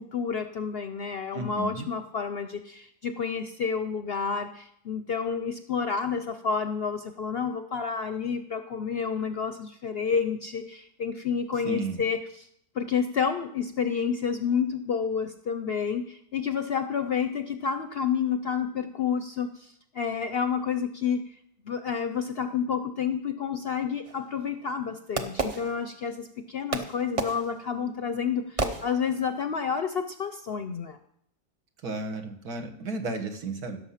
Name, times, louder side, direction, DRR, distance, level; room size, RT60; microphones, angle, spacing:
voice 1, 0.0-12.5 12.7-21.2 21.6-31.0, left 6 dB, 60° left, 9 dB, 0.6 m, -30 dB
voice 2, 1.3-1.9 11.7-12.0 31.8-33.8, right 3 dB, 80° right, 6 dB, 1.9 m, -33 dB
Fireworks, 24.0-26.3 26.7-29.4, right 3 dB, 30° right, 0.7 m, -33 dB
16.0 x 6.7 x 5.7 m, 0.71 s
omnidirectional pair, 1.6 m